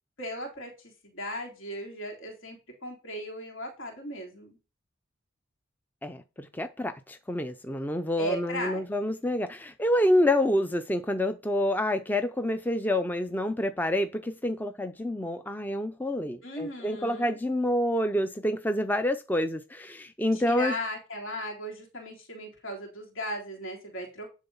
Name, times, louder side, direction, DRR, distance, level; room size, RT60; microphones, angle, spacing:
voice 1, 0.2-0.7 1.0-2.6 2.8-4.6 8.2-8.8 16.4-17.4 20.3-24.4, equal, 75° left, 3.4 m, -36 dB
voice 2, 6.0-20.7, left 1 dB, 10° left, 0.4 m, -28 dB
10.5 x 3.8 x 5.5 m
head